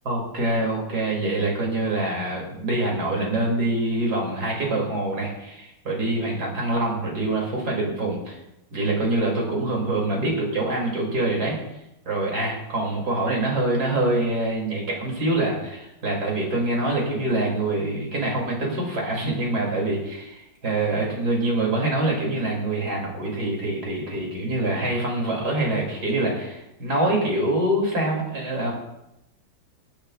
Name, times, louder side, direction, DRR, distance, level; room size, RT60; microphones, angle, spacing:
voice 1, 0.0-8.4 8.7-11.5 12.0-28.7, right 2 dB, 50° right, -1 dB, 3.5 m, -25 dB
22.5 x 8.7 x 2.5 m, 0.88 s
omnidirectional pair, 2.2 m